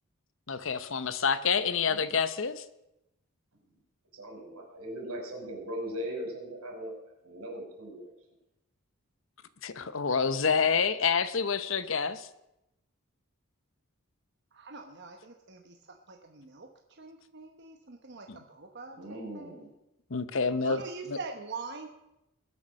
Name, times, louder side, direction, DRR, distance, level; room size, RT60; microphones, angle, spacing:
voice 1, 0.5-2.6 9.6-12.3 18.3-18.4 20.1-20.8 21.1-21.2, left 5 dB, 60° left, 13 dB, 0.8 m, -28 dB
voice 2, 4.1-6.9 7.2-8.1 18.9-19.7, equal, 90° right, 0 dB, 5.3 m, -39 dB
voice 3, 14.5-19.5 20.6-21.9, right 4 dB, 50° right, 4 dB, 1.1 m, -43 dB
20.5 x 7.0 x 6.4 m, 0.88 s
head